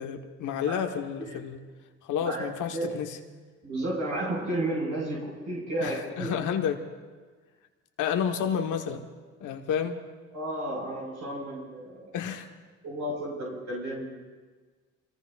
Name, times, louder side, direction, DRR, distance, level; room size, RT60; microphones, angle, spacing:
voice 1, 0.0-1.6 2.0-3.2 5.8-6.8 8.0-9.0 9.4-10.0 12.1-12.5, left 8 dB, 80° left, 5 dB, 1.3 m, -30 dB
voice 2, 3.6-6.4 10.3-12.1 12.8-14.2, right 1 dB, 65° right, -5 dB, 5.9 m, -32 dB
26.5 x 18.5 x 2.5 m, 1.4 s
cardioid pair, 90°, 30 cm